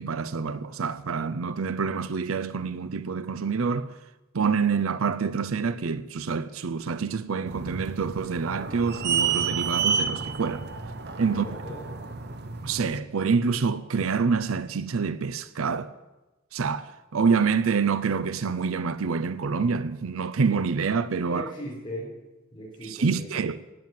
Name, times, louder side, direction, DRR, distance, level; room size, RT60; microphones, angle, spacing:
voice 1, 0.0-3.9 4.3-10.7 11.2-11.5 12.6-15.9 16.5-21.5 22.8-23.6, right 5 dB, 80° right, 0.6 m, -27 dB
sound 1, 7.5-13.0, right 6 dB, 50° right, 0.8 m, -30 dB
voice 2, 11.3-11.8 21.3-22.1 22.5-23.2, equal, 25° left, 4.3 m, -38 dB
17.0 x 9.4 x 7.3 m
head